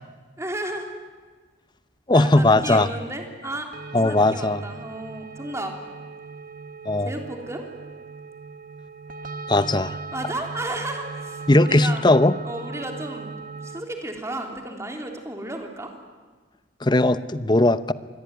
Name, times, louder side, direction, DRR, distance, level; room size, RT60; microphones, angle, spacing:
voice 1, 0.4-0.9 2.1-3.7 3.9-5.8 7.0-7.7 10.1-12.0 12.4-13.3 13.6-15.9, right 1 dB, 15° right, 3 dB, 3.3 m, -33 dB
voice 2, 2.1-2.9 3.9-4.6 6.9-7.1 9.5-9.9 11.5-12.3 16.8-17.9, left 2 dB, 25° left, 14 dB, 0.8 m, -18 dB
sound 1, 3.7-13.8, right 4 dB, 45° right, 1.4 m, -38 dB
27.0 x 21.5 x 9.4 m, 1.4 s
head